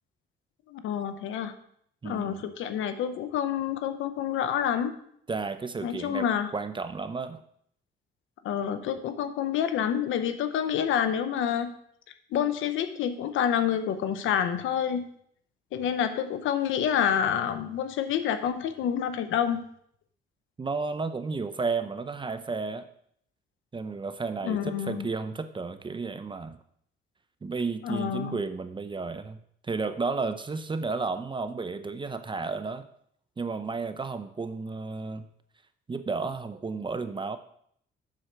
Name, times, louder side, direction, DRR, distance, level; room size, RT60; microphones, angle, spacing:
voice 1, 0.7-1.5 2.0-4.9 5.8-6.5 8.4-11.7 12.3-15.0 15.7-19.6 24.4-25.1 27.8-28.4, left 9 dB, 85° left, 10 dB, 0.8 m, -28 dB
voice 2, 2.0-2.5 5.3-6.3 6.5-7.4 20.6-22.9 23.7-26.6 27.4-32.8 33.4-35.3 35.9-37.4, right 4 dB, 25° right, 10 dB, 0.6 m, -32 dB
7.4 x 6.4 x 4.5 m, 0.67 s
cardioid pair, 90°, 20 cm